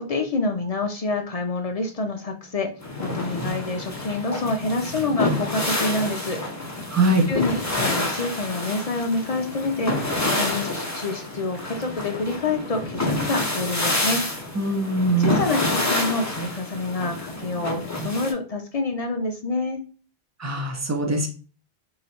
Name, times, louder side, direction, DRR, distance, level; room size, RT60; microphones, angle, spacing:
voice 1, 0.0-2.7 3.0-6.9 7.3-14.2 15.2-19.8, left 3 dB, 50° left, 4 dB, 0.5 m, -27 dB
sound 1, 2.8-18.3, left 2 dB, 20° left, 0.8 m, -28 dB
voice 2, 6.9-7.3 14.6-15.4 20.4-21.3, right 2 dB, 20° right, 2 dB, 0.6 m, -22 dB
3.2 x 2.8 x 4.1 m, 0.37 s
omnidirectional pair, 1.1 m